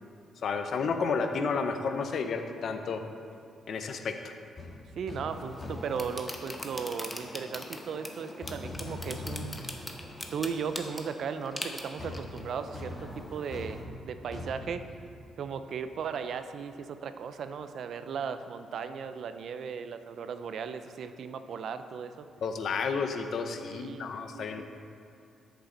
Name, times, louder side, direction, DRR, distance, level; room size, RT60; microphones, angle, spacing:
voice 1, 0.4-3.0 3.7-4.3 22.4-24.6, left 5 dB, 60° left, 6 dB, 0.7 m, -31 dB
sound 1, 4.6-4.7 5.1-5.3 5.6-6.0 8.4-9.8 10.2-10.3 12.0-15.6 15.9-16.1, left 2 dB, 30° left, 2.1 m, -41 dB
voice 2, 5.0-9.6 10.3-14.8 15.4-22.3 23.7-24.1 24.3-24.6, right 6 dB, 65° right, 10 dB, 0.5 m, -36 dB
sound 2, 5.3-13.9, left 1 dB, 15° left, 0.9 m, -42 dB
13.0 x 6.9 x 3.9 m, 2.5 s
cardioid pair, 115°, 0 cm